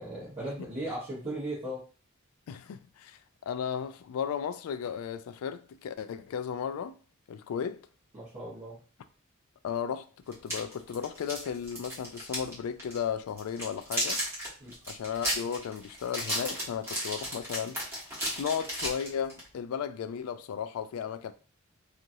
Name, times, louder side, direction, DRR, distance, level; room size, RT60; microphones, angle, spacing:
voice 1, 0.0-1.8 8.1-8.8 14.6-14.7, right 1 dB, 30° right, 1.1 m, -37 dB
voice 2, 2.5-3.2 3.5-7.0 7.3-7.8 9.6-14.2 14.9-21.3, left 7 dB, 75° left, 0.3 m, -35 dB
sound 1, 10.3-12.5 12.8-13.0 13.4-19.5, equal, 10° right, 1.2 m, -34 dB
3.0 x 2.4 x 2.7 m
head